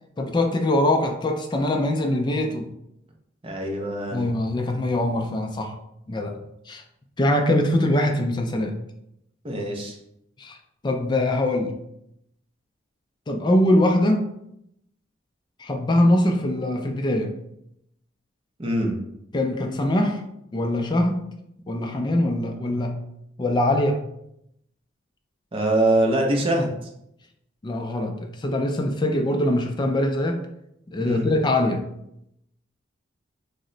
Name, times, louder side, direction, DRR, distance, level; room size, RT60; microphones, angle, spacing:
voice 1, 0.2-2.7 4.1-5.8 6.1-6.4 6.7-6.8 7.2-8.7 10.4-10.6 10.8-11.7 13.3-14.3 15.6-17.3 19.3-20.2 20.5-21.3 21.7-23.0 23.4-24.0 27.6-30.5 30.9-31.8, left 1 dB, 25° left, 4 dB, 0.3 m, -22 dB
voice 2, 3.4-4.3 9.4-10.0 18.6-19.0 25.5-26.7 31.0-31.3, right 1 dB, 30° right, 1 dB, 0.6 m, -23 dB
2.9 x 2.1 x 3.7 m, 0.78 s
head